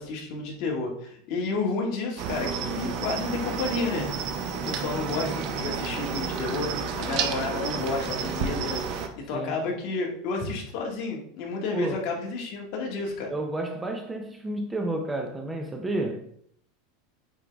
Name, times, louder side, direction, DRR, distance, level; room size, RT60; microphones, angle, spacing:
voice 1, 0.0-4.1 4.6-8.8 9.2-13.3, left 3 dB, 45° left, 1.8 m, -31 dB
Cricket, 2.2-9.1, right 6 dB, 40° right, 0.9 m, -31 dB
voice 2, 13.3-16.3, right 2 dB, 10° right, 0.5 m, -31 dB
8.7 x 3.6 x 3.5 m
supercardioid pair, 160°, 0 cm